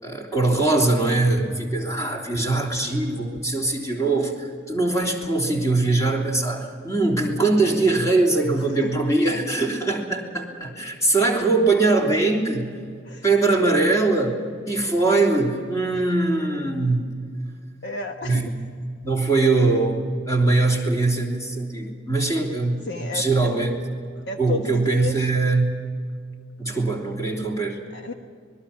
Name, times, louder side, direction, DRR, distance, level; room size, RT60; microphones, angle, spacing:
voice 1, 0.0-12.7 13.2-17.3 18.2-18.5 19.0-20.0 20.2-23.8 24.4-25.8 26.6-27.8, right 3 dB, 15° left, 0 dB, 3.3 m, -22 dB
voice 2, 17.8-18.4 22.8-23.5 24.2-25.3 27.9-28.1, left 3 dB, 60° left, 4 dB, 1.2 m, -32 dB
25.5 x 21.0 x 5.8 m, 2.2 s
head